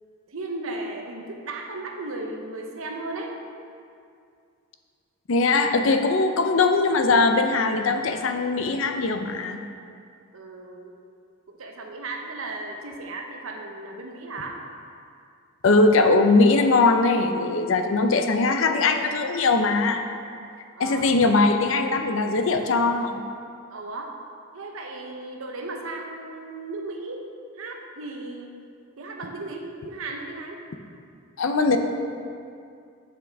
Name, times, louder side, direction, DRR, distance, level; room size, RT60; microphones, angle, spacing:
voice 1, 0.3-3.4 10.3-11.0 11.5-14.6 20.8-21.2 23.7-24.2 24.5-27.3 27.5-28.5 29.0-30.6, right 2 dB, 75° right, 2 dB, 0.8 m, -35 dB
voice 2, 5.3-9.6 15.6-20.0 20.8-23.2 31.4-31.8, left 3 dB, 65° left, 6 dB, 0.5 m, -20 dB
7.3 x 5.9 x 3.5 m, 2.4 s
head